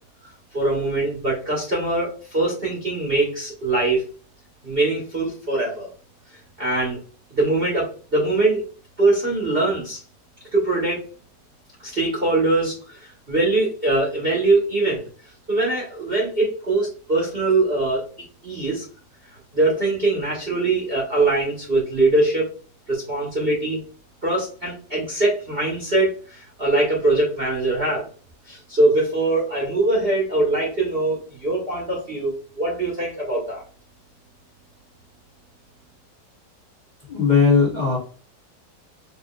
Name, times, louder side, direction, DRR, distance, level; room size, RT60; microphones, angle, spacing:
voice 1, 0.5-4.0 4.6-5.9 6.6-7.0 7.4-8.6 9.0-10.0 10.5-11.0 11.8-15.0 15.5-18.1 18.4-18.8 19.5-22.5 22.9-23.8 24.2-28.0 28.5-33.6, right 2 dB, 35° right, -3 dB, 1.2 m, -22 dB
voice 2, 37.1-38.0, left 5 dB, 25° left, -6 dB, 1.6 m, -18 dB
4.8 x 2.8 x 2.3 m, 0.38 s
omnidirectional pair, 1.9 m